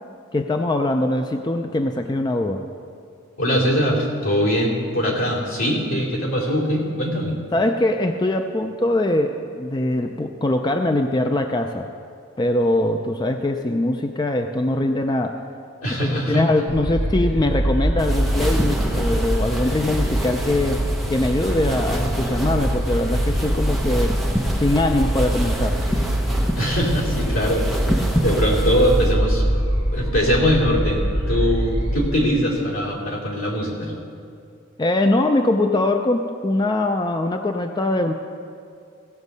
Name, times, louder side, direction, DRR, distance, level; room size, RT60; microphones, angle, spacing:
voice 1, 0.3-2.6 7.5-11.9 12.4-15.4 15.9-24.2 24.6-25.8 34.8-38.1, left 1 dB, 20° left, 5 dB, 0.4 m, -22 dB
voice 2, 3.4-7.3 15.8-16.4 26.6-29.4 29.9-33.9, equal, 80° left, -3 dB, 2.7 m, -22 dB
sound 1, 16.7-31.9, equal, 60° left, 3.4 m, -23 dB
sound 2, 18.0-29.2, equal, ahead, 0.8 m, -29 dB
16.0 x 7.2 x 5.3 m, 2.3 s
head